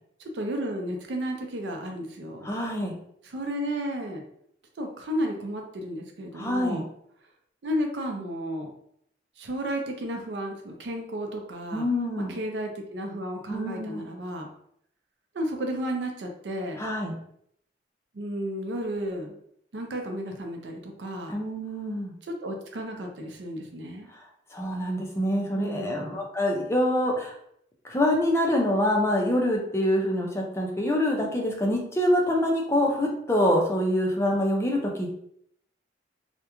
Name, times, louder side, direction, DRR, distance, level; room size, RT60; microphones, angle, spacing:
voice 1, 0.2-2.5 3.2-4.2 4.8-6.8 7.6-8.7 9.4-11.9 12.3-14.5 15.3-16.8 18.1-19.3 19.7-21.3 22.2-24.1 25.5-26.1, equal, 80° right, 2 dB, 0.5 m, -33 dB
voice 2, 2.4-2.9 6.3-6.8 11.7-12.3 13.5-14.0 16.8-17.1 21.3-22.1 24.5-27.3 27.9-35.1, left 1 dB, 15° left, -1 dB, 0.4 m, -25 dB
2.3 x 2.1 x 2.9 m, 0.69 s
head